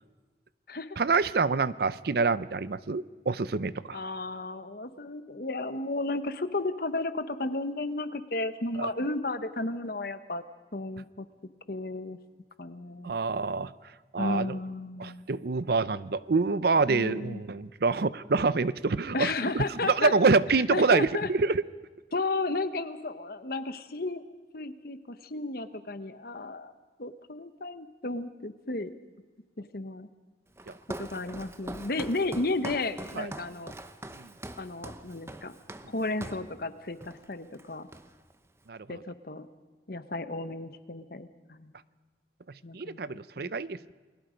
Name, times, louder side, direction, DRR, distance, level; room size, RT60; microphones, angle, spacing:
voice 1, 1.0-4.0 8.8-8.9 13.0-13.7 14.1-14.6 15.0-21.6 30.7-30.8 33.2-33.3 34.2-34.3 38.7-39.0 42.7-43.9, right 4 dB, 60° right, 17 dB, 0.6 m, -26 dB
voice 2, 3.9-10.4 10.7-11.3 11.7-12.2 12.6-13.2 14.2-15.3 16.9-17.4 19.1-20.1 20.7-21.3 22.1-24.2 24.5-26.7 27.0-28.9 29.7-30.1 31.0-33.7 34.6-35.5 35.9-37.9 38.9-39.5 39.9-41.7 42.6-43.0 43.4-43.5, left 2 dB, 55° left, 11 dB, 1.1 m, -33 dB
Walk footsteps, 30.6-36.5 37.0-37.3 37.5-38.4, right 1 dB, 15° right, 0.8 m, -42 dB
29.5 x 21.0 x 5.2 m, 1.3 s
head